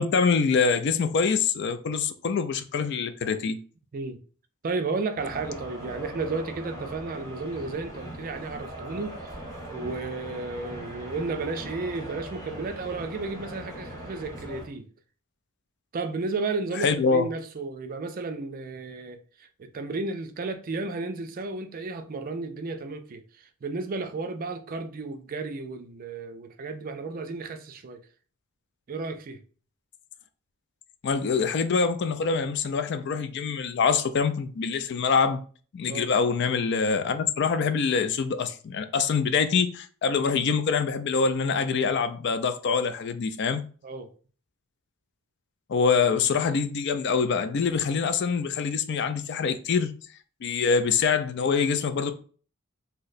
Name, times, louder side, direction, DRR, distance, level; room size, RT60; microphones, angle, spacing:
voice 1, 0.0-3.6 16.8-17.2 31.0-35.4 35.7-43.6 45.7-49.9 50.4-52.1, left 5 dB, 50° left, 0.3 m, -25 dB
voice 2, 4.6-9.3 9.7-14.9 15.9-28.0 28.9-29.4 35.9-36.1 43.8-44.1, right 3 dB, 40° right, 0.4 m, -33 dB
sound 1, 5.2-14.7, right 1 dB, 15° left, 0.9 m, -40 dB
2.8 x 2.1 x 3.9 m
head